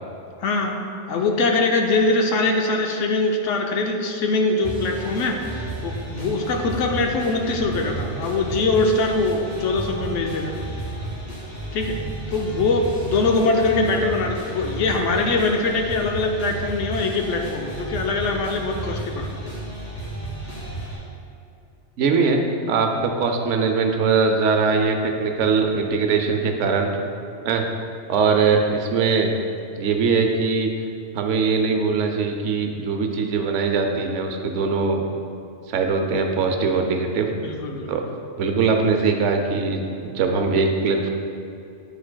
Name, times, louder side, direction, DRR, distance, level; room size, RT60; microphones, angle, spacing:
voice 1, 0.4-0.8 1.1-10.6 11.7-12.0 12.3-19.3 22.2-22.3 22.9-23.1 37.4-37.9, left 3 dB, 90° left, 2 dB, 1.0 m, -22 dB
sound 1, 4.6-21.0, right 2 dB, 55° left, 2.0 m, -33 dB
voice 2, 22.0-26.9 27.4-27.6 28.1-29.3 29.8-30.7 31.1-35.0 35.7-37.3 37.9-38.0 38.4-41.1, right 4 dB, 80° right, 4 dB, 0.9 m, -21 dB
9.0 x 4.9 x 2.2 m, 2.6 s
omnidirectional pair, 1.2 m